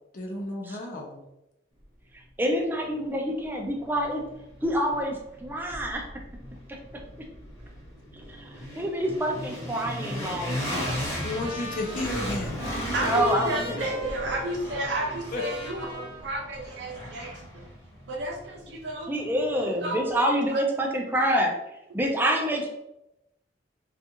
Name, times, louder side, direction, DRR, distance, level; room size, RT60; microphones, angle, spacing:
voice 1, 0.1-1.2 11.2-12.7 15.3-15.4, left 2 dB, 50° left, 0 dB, 0.5 m, -32 dB
voice 2, 2.1-4.2 4.6-6.1 6.7-6.8 8.1-10.6 13.0-13.9 19.1-21.5 21.9-22.7, equal, 10° right, 1 dB, 0.3 m, -27 dB
sound 1, 3.0-3.1 3.6-19.6, equal, 15° left, 1.0 m, -37 dB
Trumpet, 10.9-17.1, equal, 85° left, 1.0 m, -42 dB
voice 3, 12.9-17.3 18.1-19.1 19.8-20.0 20.5-20.6, right 1 dB, 80° right, 0 dB, 0.7 m, -31 dB
2.4 x 2.4 x 2.7 m, 0.88 s
head